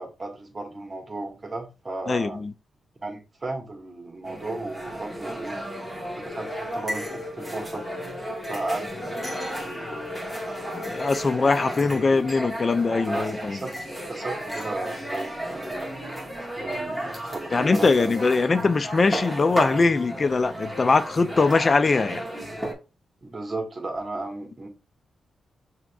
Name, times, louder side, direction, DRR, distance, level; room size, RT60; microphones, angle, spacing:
voice 1, 0.0-2.4 3.0-5.6 6.1-7.8 8.4-9.0 9.6-10.6 11.4-11.5 11.7-12.2 13.0-13.7 14.1-15.9 16.6-18.3 23.2-24.7, right 2 dB, 35° right, 1.4 m, -35 dB
voice 2, 2.1-2.5 10.9-13.6 17.5-22.2, left 4 dB, 45° left, 0.4 m, -22 dB
sound 1, 4.2-22.7, right 1 dB, 5° left, 1.5 m, -34 dB
sound 2, 6.3-11.3, left 3 dB, 70° left, 1.2 m, -40 dB
6.0 x 3.0 x 2.3 m
cardioid pair, 65°, 0 cm